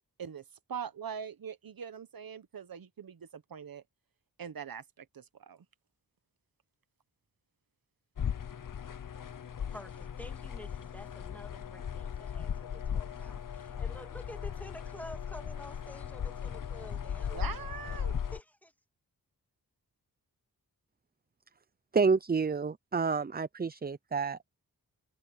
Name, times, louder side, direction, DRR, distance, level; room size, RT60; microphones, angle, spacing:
voice 1, 0.7-3.8 4.4-5.6 17.3-18.2, right 7 dB, 75° right, 1.3 m, -42 dB
sound 1, 8.2-18.4, left 8 dB, 60° left, 1.0 m, -37 dB
voice 2, 9.7-17.5 17.8-18.7, equal, 5° left, 2.8 m, -50 dB
voice 3, 21.9-24.6, right 5 dB, 25° right, 0.6 m, -29 dB
cardioid pair, 55°, 36 cm